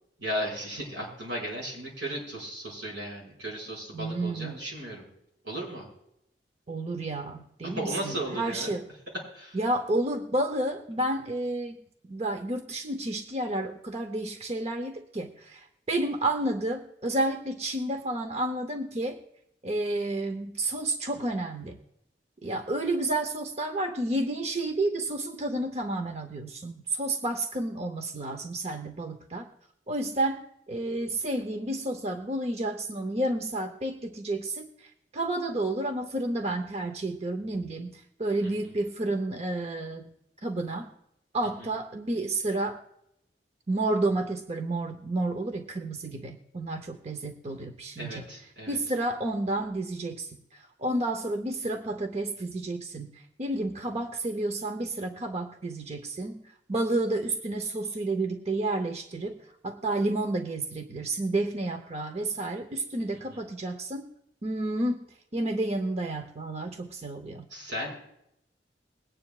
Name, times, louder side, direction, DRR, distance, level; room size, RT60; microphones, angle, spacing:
voice 1, 0.2-5.1 5.4-5.9 7.6-8.7 9.3-9.6 38.4-38.5 41.6-41.7 48.0-48.8 63.3-63.5 67.5-68.0, right 1 dB, 90° right, -2 dB, 5.3 m, -35 dB
voice 2, 3.9-4.6 6.7-8.8 9.5-11.8 12.1-19.2 19.6-21.8 22.4-29.5 29.9-30.4 30.7-40.1 40.4-40.9 41.3-42.8 43.7-48.2 48.7-56.4 56.7-59.4 59.6-64.1 64.4-65.0 65.3-67.5, right 2 dB, 35° right, 6 dB, 0.8 m, -30 dB
21.5 x 9.5 x 2.4 m, 0.79 s
head